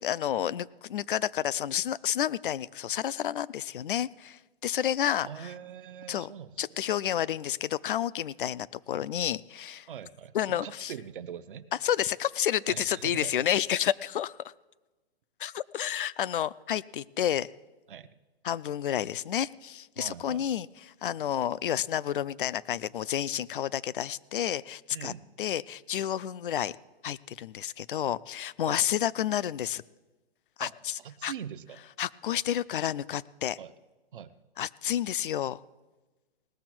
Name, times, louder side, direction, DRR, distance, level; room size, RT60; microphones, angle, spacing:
voice 1, 0.0-5.5 6.1-6.3 6.6-9.9 10.3-10.9 11.8-14.4 15.4-17.5 18.4-25.1 25.4-26.7 27.0-29.8 30.6-31.3 32.0-33.6 34.6-35.6, left 10 dB, 55° left, 20 dB, 0.4 m, -30 dB
voice 2, 5.2-6.5 9.9-11.7 12.7-13.4 17.9-18.1 20.0-20.5 24.9-25.3 28.6-28.8 30.6-30.7 31.0-31.8 33.6-33.7 34.1-34.3, right 9 dB, 55° right, 13 dB, 0.8 m, -42 dB
18.5 x 7.0 x 6.0 m, 1.2 s
hypercardioid pair, 175°, 31 cm